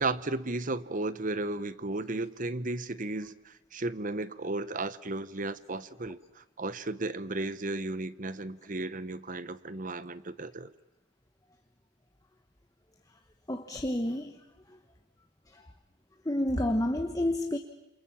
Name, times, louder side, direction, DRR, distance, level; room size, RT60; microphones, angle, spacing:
voice 1, 0.0-10.7, right 2 dB, 40° right, 15 dB, 1.0 m, -34 dB
voice 2, 13.5-14.4 15.5-15.6 16.2-17.6, left 1 dB, 20° left, 5 dB, 1.2 m, -29 dB
28.5 x 27.5 x 7.4 m, 0.95 s
head